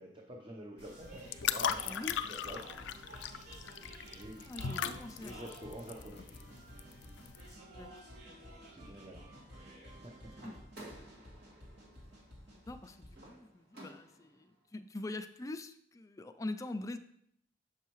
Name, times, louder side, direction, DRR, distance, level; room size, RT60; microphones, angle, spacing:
voice 1, 0.0-2.7 3.0-3.1 4.1-4.9 5.2-6.2 8.7-9.2 10.0-10.1, right 1 dB, 30° right, 0 dB, 0.7 m, -48 dB
sound 1, 0.8-7.5, left 8 dB, 85° left, 0.4 m, -39 dB
sound 2, 0.8-13.3, right 1 dB, 80° right, 2.5 m, -52 dB
voice 2, 1.8-2.2 4.5-5.4 7.6-7.9 10.4-10.6 12.3-17.0, left 2 dB, 20° left, 8 dB, 0.4 m, -44 dB
sound 3, 10.3-14.4, right 1 dB, 60° right, 2.0 m, -54 dB
7.1 x 5.6 x 3.1 m, 0.70 s
head